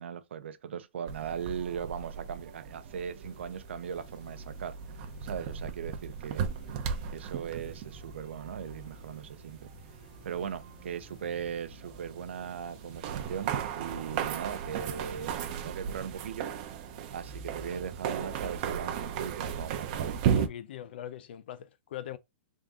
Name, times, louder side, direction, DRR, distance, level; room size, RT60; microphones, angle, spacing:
voice 1, 0.0-6.5 7.1-9.7 10.2-16.5 17.1-20.2, right 8 dB, 80° right, 0.6 m, -39 dB
sound 1, 1.1-20.5, right 8 dB, 35° right, 0.6 m, -36 dB
sound 2, 3.2-16.0, left 4 dB, 35° left, 1.1 m, -57 dB
voice 2, 20.3-22.2, left 11 dB, 55° left, 0.5 m, -41 dB
3.6 x 2.7 x 3.5 m
hypercardioid pair, 165°, 6 cm